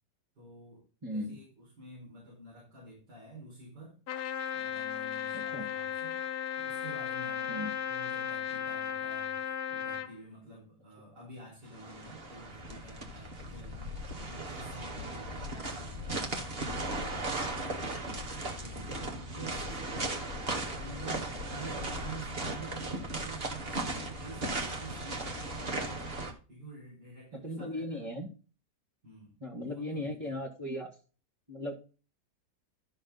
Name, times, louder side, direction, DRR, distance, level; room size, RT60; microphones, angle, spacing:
voice 1, 0.4-0.8 1.1-4.0 4.5-6.2 6.6-16.5 16.9-26.0 26.5-28.1 29.0-30.4, right 2 dB, 75° right, -5 dB, 5.8 m, -49 dB
voice 2, 1.0-1.4 5.3-5.7 7.5-7.7 18.0-18.2 27.3-28.3 29.4-31.0 31.5-31.7, left 1 dB, 20° right, -4 dB, 1.8 m, -37 dB
Trumpet, 4.1-10.1, left 9 dB, 65° left, 1.4 m, -35 dB
sound 1, 11.7-26.3, right 2 dB, 35° right, 1.9 m, -37 dB
13.0 x 6.3 x 4.0 m, 0.36 s
omnidirectional pair, 1.8 m